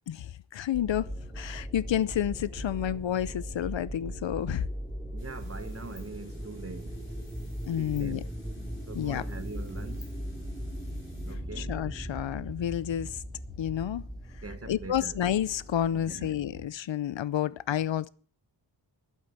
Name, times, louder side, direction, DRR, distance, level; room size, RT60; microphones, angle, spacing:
voice 1, 0.1-4.7 7.6-8.2 8.9-9.2 11.6-13.2 13.6-14.1 14.3-18.1, left 10 dB, 75° left, 0.6 m, -30 dB
sound 1, 0.7-16.7, equal, ahead, 2.4 m, -39 dB
voice 2, 5.1-7.3 7.8-8.3 8.9-10.1 11.2-11.8 14.4-15.2 15.9-16.3, right 3 dB, 30° right, 1.3 m, -43 dB
sound 2, 5.2-11.3, left 2 dB, 25° left, 4.8 m, -58 dB
11.5 x 8.3 x 7.0 m
wide cardioid pair, 120°, 45 cm